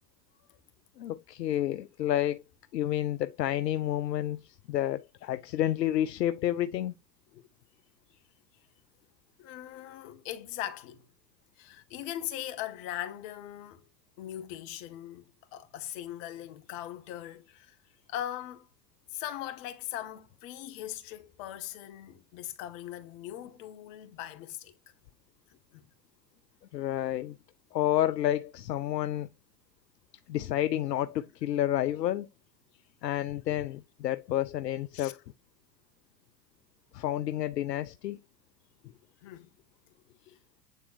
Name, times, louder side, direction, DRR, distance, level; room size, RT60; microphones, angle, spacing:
voice 1, 1.0-2.4 2.7-4.4 4.7-6.9 26.7-27.4 27.7-29.3 30.3-32.3 33.0-35.2 36.9-38.2, left 12 dB, 80° left, 0.6 m, -30 dB
voice 2, 9.4-11.0 11.6-13.9 14.2-17.7 18.1-18.7 19.1-24.7 25.7-25.8 34.9-35.2 39.2-39.5, left 12 dB, 50° left, 1.6 m, -40 dB
9.2 x 4.2 x 2.6 m
figure-of-eight pair, 90°, 49 cm